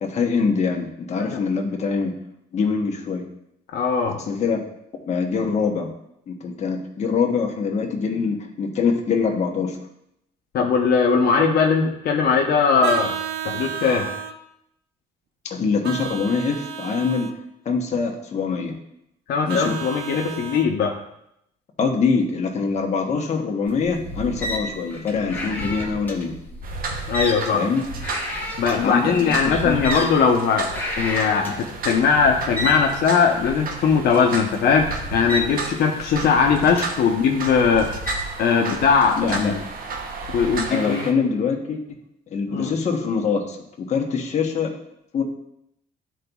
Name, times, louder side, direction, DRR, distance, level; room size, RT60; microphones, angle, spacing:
voice 1, 0.0-2.1 2.5-3.2 4.3-4.6 5.1-5.9 6.3-9.8 15.4-17.3 17.6-18.7 19.4-19.7 21.8-26.3 27.5-27.8 28.8-29.8 39.2-39.5 40.7-41.8 42.3-44.7 45.1-45.2, left 5 dB, 40° left, 1 dB, 1.0 m, -24 dB
voice 2, 3.7-4.2 10.5-13.2 13.4-14.1 19.3-21.0 27.1-27.6 28.6-37.9 38.4-39.6 40.3-41.1 42.5-42.7, left 5 dB, 70° left, 1 dB, 0.8 m, -20 dB
Vehicle horn car horn honking, 12.8-14.4 15.8-17.3 19.5-20.7, right 8 dB, 85° right, 0.5 m, -31 dB
sound 1, 23.7-40.7, equal, 10° left, 1.0 m, -33 dB
sound 2, 26.6-41.1, right 4 dB, 60° right, 0.8 m, -34 dB
11.5 x 4.0 x 2.3 m, 0.79 s
cardioid pair, 135°, 17 cm